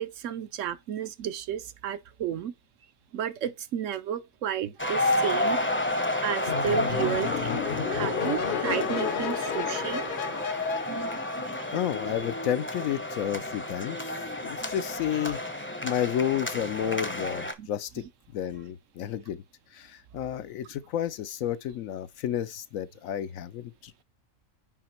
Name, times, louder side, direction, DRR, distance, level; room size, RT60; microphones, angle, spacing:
voice 1, 0.0-2.5 3.1-5.6 6.2-7.6 7.9-10.4 10.9-11.6 17.6-17.7, right 10 dB, 70° right, 1.0 m, -33 dB
sound 1, 4.8-17.5, left 1 dB, 10° left, 0.6 m, -31 dB
sound 2, 6.5-11.9, left 8 dB, 55° left, 0.6 m, -32 dB
voice 2, 11.7-14.1 14.4-15.4 15.8-18.0 18.3-19.4 19.7-24.0, left 10 dB, 80° left, 1.1 m, -31 dB
5.7 x 5.1 x 4.4 m
omnidirectional pair, 1.4 m